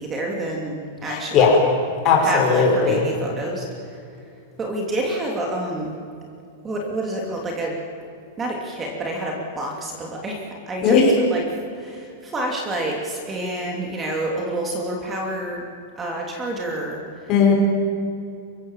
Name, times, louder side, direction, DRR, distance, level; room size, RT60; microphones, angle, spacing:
voice 1, 0.0-1.6 2.2-4.0 4.6-5.9 6.6-7.8 8.4-15.6 16.0-17.3, right 1 dB, 15° right, 0 dB, 2.9 m, -28 dB
voice 2, 1.1-1.6 2.0-3.0 10.8-11.1 17.3-17.5, left 5 dB, 35° left, 0 dB, 6.1 m, -17 dB
28.0 x 16.5 x 7.5 m, 2.5 s
supercardioid pair, 155°, 0 cm